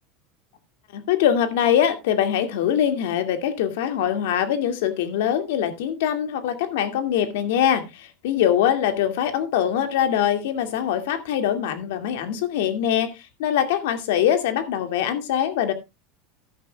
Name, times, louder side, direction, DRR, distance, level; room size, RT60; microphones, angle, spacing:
voice 1, 0.9-13.1 13.4-15.7, left 10 dB, 75° left, 8 dB, 2.2 m, -23 dB
14.0 x 11.0 x 2.3 m, 0.24 s
supercardioid pair, 170°, 0 cm